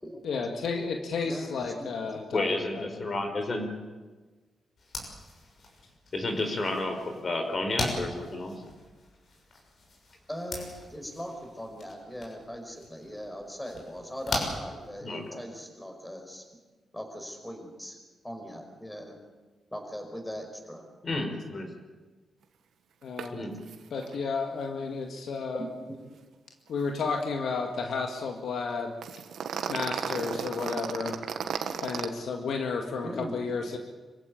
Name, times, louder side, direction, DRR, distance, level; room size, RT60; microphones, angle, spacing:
voice 1, 0.2-2.5 2.7-2.9 23.0-23.4 23.9-25.7 26.7-28.9 29.7-31.2 31.8-33.8, left 4 dB, 75° left, 3 dB, 2.0 m, -32 dB
voice 2, 1.2-1.9 10.3-16.4 16.9-18.0 18.2-19.2 19.7-20.8 25.5-25.9 33.0-33.4, equal, 10° left, 4 dB, 5.3 m, -40 dB
voice 3, 2.3-3.7 6.1-8.6 15.0-15.4 21.0-21.7 23.3-23.5, left 2 dB, 40° left, 5 dB, 4.5 m, -31 dB
sound 1, 4.8-15.4, left 2 dB, 60° left, 6.6 m, -40 dB
sound 2, 23.2-23.3 23.6-23.8 24.0-24.1 29.0-32.1, right 7 dB, 85° right, 1.6 m, -33 dB
26.0 x 15.5 x 8.7 m, 1.3 s
cardioid pair, 95°, 0 cm